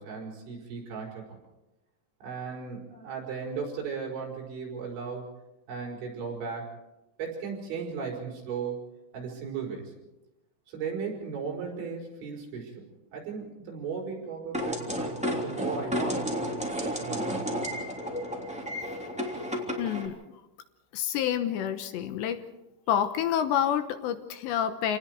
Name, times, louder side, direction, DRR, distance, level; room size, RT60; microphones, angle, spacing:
voice 1, 0.0-1.4 2.2-5.3 5.7-6.7 7.2-9.9 10.7-12.8 13.1-16.3 16.8-17.5, right 5 dB, 75° right, -1 dB, 7.7 m, -36 dB
sound 1, 14.5-20.1, equal, ahead, 1.9 m, -32 dB
voice 2, 19.8-20.1 20.9-22.4 22.9-25.0, left 9 dB, 75° left, 9 dB, 3.1 m, -28 dB
28.5 x 19.5 x 4.7 m, 0.97 s
omnidirectional pair, 5.5 m